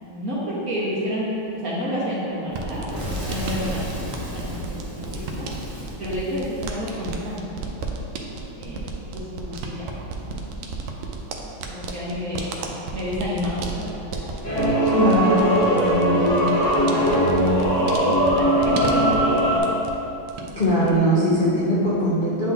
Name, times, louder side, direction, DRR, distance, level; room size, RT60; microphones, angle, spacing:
voice 1, 0.0-2.9 3.2-5.5 6.0-7.7 8.5-10.2 10.5-10.9 11.3-14.3 16.1-19.1, equal, 60° right, -7 dB, 1.0 m, -31 dB
Fire / Explosion, 2.5-7.3, equal, 40° right, 1.9 m, -34 dB
sound 1, 2.5-20.0 20.3-21.0, right 3 dB, 75° right, 1.3 m, -34 dB
sound 2, 14.4-19.6, equal, 45° left, 1.1 m, -19 dB
voice 2, 14.9-15.5 20.6-22.5, equal, 70° left, -10 dB, 0.4 m, -20 dB
9.0 x 3.8 x 2.8 m, 2.9 s
omnidirectional pair, 2.4 m